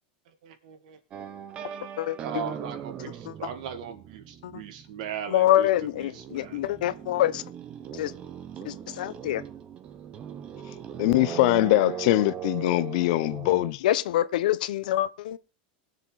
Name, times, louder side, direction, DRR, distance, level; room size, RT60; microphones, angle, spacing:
voice 1, 0.4-1.3 2.2-6.7, right 8 dB, 60° right, 2.2 m, -38 dB
sound 1, 1.1-5.2 5.4-13.7, right 9 dB, 25° right, 0.9 m, -39 dB
voice 2, 2.0-2.4 3.3-3.4 4.4-4.6 5.3-7.4 7.9-8.1 8.6-9.4 13.8-15.4, left 13 dB, 75° left, 0.9 m, -26 dB
voice 3, 11.0-13.8, left 18 dB, 50° left, 0.6 m, -22 dB
20.5 x 7.2 x 4.1 m
supercardioid pair, 165°, 5 cm